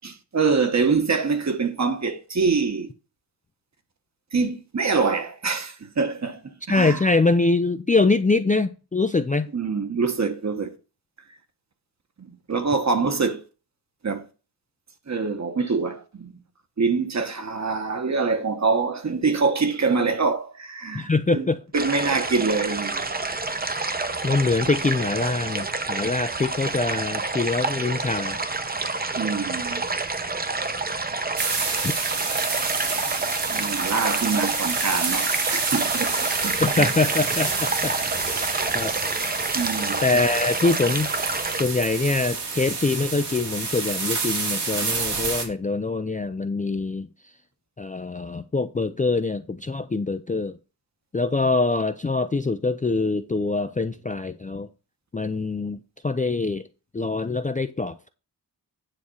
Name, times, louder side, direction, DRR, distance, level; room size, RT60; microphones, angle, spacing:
voice 1, 0.0-2.9 4.3-7.0 9.5-10.7 12.2-13.4 14.0-14.3 15.1-16.3 16.8-21.5 21.7-23.1 29.2-29.8 33.5-36.1 36.4-36.9 39.5-40.0, right 4 dB, 40° right, 1.3 m, -25 dB
voice 2, 6.7-9.5 20.9-21.6 24.2-28.4 31.8-31.9 36.6-38.0 38.3-38.9 40.0-41.1 41.6-47.1 47.8-50.5 51.1-54.7 55.1-55.8 56.0-56.7 56.9-58.1, left 3 dB, 20° left, 0.4 m, -24 dB
sound 1, 21.7-41.6, right 3 dB, 20° right, 0.8 m, -28 dB
sound 2, 31.4-45.5, right 4 dB, 75° right, 2.5 m, -28 dB
9.6 x 4.2 x 6.3 m
wide cardioid pair, 140°, 41 cm